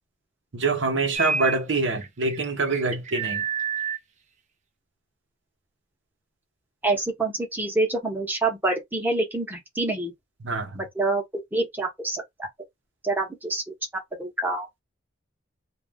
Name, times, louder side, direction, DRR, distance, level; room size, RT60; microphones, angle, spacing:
voice 1, 0.5-3.4 10.4-10.8, right 3 dB, 60° right, 0.8 m, -25 dB
sound 1, 1.1-1.6 2.0-4.0, right 5 dB, 35° right, 0.5 m, -29 dB
voice 2, 6.8-10.1 10.8-12.2 13.0-13.6 14.2-14.7, right 2 dB, 10° right, 0.9 m, -26 dB
2.4 x 2.0 x 3.4 m
head